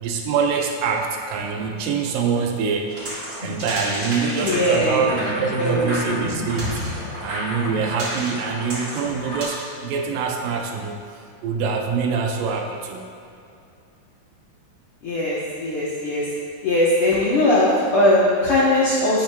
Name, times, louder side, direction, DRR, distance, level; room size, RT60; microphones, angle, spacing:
voice 1, 0.0-2.9 3.4-6.8 7.2-13.1, right 5 dB, 80° right, 2 dB, 2.2 m, -25 dB
sound 1, 2.9-9.4, equal, 35° right, 1.6 m, -31 dB
voice 2, 4.4-6.0 15.0-16.3 16.6-19.2, left 1 dB, 70° left, -7 dB, 1.3 m, -20 dB
10.0 x 8.3 x 2.3 m, 2.6 s
omnidirectional pair, 4.1 m